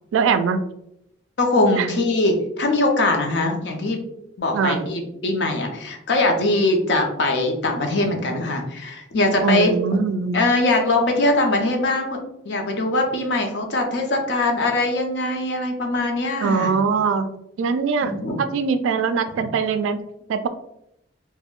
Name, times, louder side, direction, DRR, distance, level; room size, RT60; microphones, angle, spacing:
voice 1, 0.1-0.6 1.8-1.9 4.5-4.8 9.4-10.4 16.4-17.3 17.6-20.0 20.3-20.5, right 5 dB, 85° right, 11 dB, 0.3 m, -22 dB
voice 2, 1.4-4.0 4.4-9.7 10.3-12.2 12.5-16.8 18.0-18.4 19.4-19.5, left 2 dB, 60° left, 3 dB, 0.5 m, -22 dB
3.5 x 2.1 x 2.4 m, 0.81 s
head